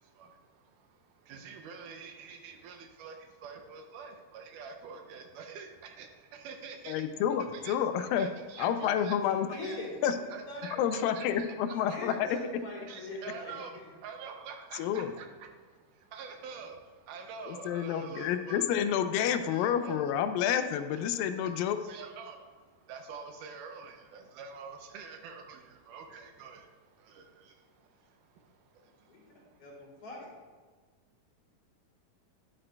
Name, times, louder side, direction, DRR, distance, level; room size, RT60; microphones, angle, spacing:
voice 1, 0.0-7.1 7.5-9.2 9.6-9.8 10.3-12.2 12.9-18.7 19.4-20.0 21.4-21.5 21.8-30.1, right 5 dB, 75° right, 4 dB, 2.1 m, -47 dB
voice 2, 6.9-8.3 8.6-9.5 10.0-10.2 10.8-12.3 14.7-15.1 17.5-21.8, left 9 dB, 85° left, 9 dB, 2.3 m, -29 dB
voice 3, 9.5-10.2 10.5-10.6 10.9-11.0 11.7-13.5 29.1-29.2 29.6-30.3, left 2 dB, 45° left, -3 dB, 2.1 m, -42 dB
11.0 x 8.7 x 2.3 m, 1.4 s
omnidirectional pair, 3.9 m